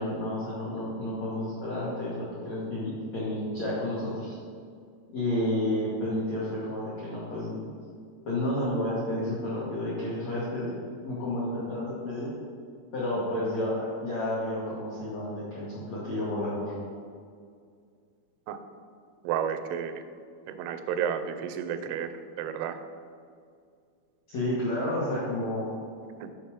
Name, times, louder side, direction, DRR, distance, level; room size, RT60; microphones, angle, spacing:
voice 1, 0.0-4.4 5.1-7.7 8.2-12.3 12.9-16.7 24.3-25.7, left 1 dB, 75° left, -8 dB, 1.5 m, -31 dB
voice 2, 19.2-19.9 20.5-22.8 26.2-26.3, right 8 dB, 90° right, 10 dB, 3.0 m, -31 dB
9.5 x 4.6 x 4.9 m, 2.2 s
omnidirectional pair, 5.3 m